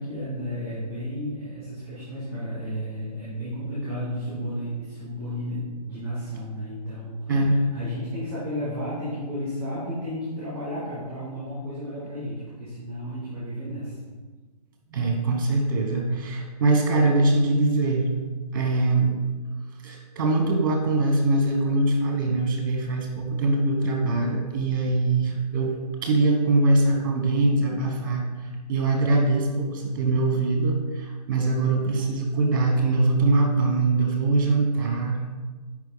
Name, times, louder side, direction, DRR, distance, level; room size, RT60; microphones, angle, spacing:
voice 1, 0.0-13.9, equal, 15° right, -11 dB, 2.2 m, -33 dB
voice 2, 7.3-7.6 14.9-18.1 18.5-19.1 19.8-28.2 28.7-35.2, right 2 dB, 30° right, 2 dB, 1.1 m, -22 dB
6.3 x 5.1 x 3.9 m, 1.3 s
hypercardioid pair, 170°, 21 cm